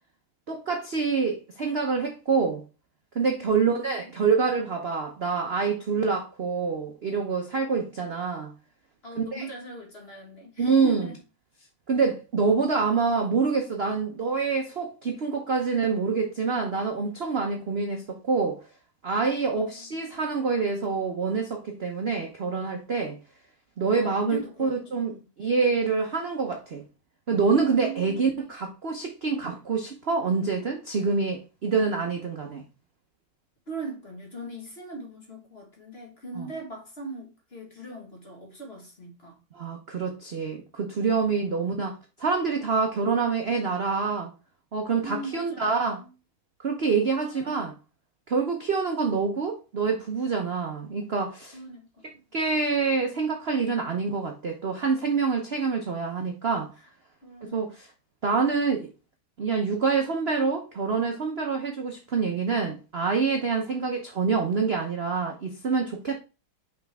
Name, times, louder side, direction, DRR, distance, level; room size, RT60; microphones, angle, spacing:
voice 1, 0.5-2.6 3.1-8.5 9.2-9.5 10.6-11.1 11.9-18.6 19.0-23.2 23.8-26.8 27.3-32.6 36.3-36.5 39.6-44.3 44.7-46.0 46.6-47.7 48.3-51.6 52.3-56.7 57.4-57.9 58.2-58.9 59.4-66.2, right 5 dB, 55° right, 0.7 m, -26 dB
voice 2, 3.4-4.1 9.0-11.2 19.4-20.2 23.9-25.3 27.6-28.5 33.7-39.4 45.0-46.1 47.0-47.7 51.5-52.2 56.8-56.9 57.2-57.7, right 2 dB, 30° left, 1.7 m, -40 dB
5.8 x 5.1 x 3.4 m
omnidirectional pair, 2.3 m